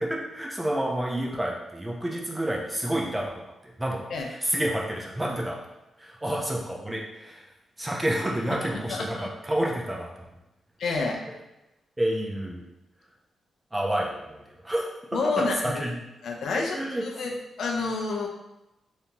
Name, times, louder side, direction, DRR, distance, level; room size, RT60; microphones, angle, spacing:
voice 1, 0.0-3.3 3.6-5.6 6.0-7.4 7.8-10.1 12.0-12.6 13.7-14.9 15.6-16.0 16.7-17.0, right 1 dB, 15° right, -2 dB, 0.8 m, -29 dB
voice 2, 8.9-9.3 10.8-11.2 15.1-15.8 16.2-18.3, left 3 dB, 75° left, 1 dB, 0.5 m, -29 dB
3.3 x 2.8 x 2.9 m, 0.94 s
supercardioid pair, 55°, 0 cm